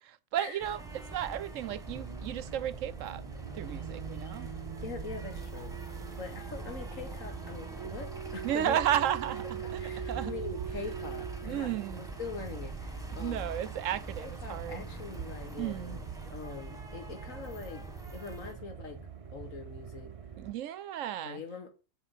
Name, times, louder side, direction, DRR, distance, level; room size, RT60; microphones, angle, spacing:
voice 1, 0.3-4.5 8.4-9.8 10.1-10.3 11.4-12.0 13.1-14.9 15.6-16.0 20.4-21.4, right 11 dB, 70° right, 1.0 m, -33 dB
sound 1, 0.6-18.5, right 1 dB, 5° right, 1.5 m, -45 dB
sound 2, 0.8-20.5, right 7 dB, 35° right, 0.6 m, -42 dB
voice 2, 4.8-5.8 6.1-8.8 9.6-13.5 14.2-19.0 19.3-20.1 21.2-21.7, left 4 dB, 70° left, 2.1 m, -43 dB
8.0 x 5.4 x 7.4 m
omnidirectional pair, 1.4 m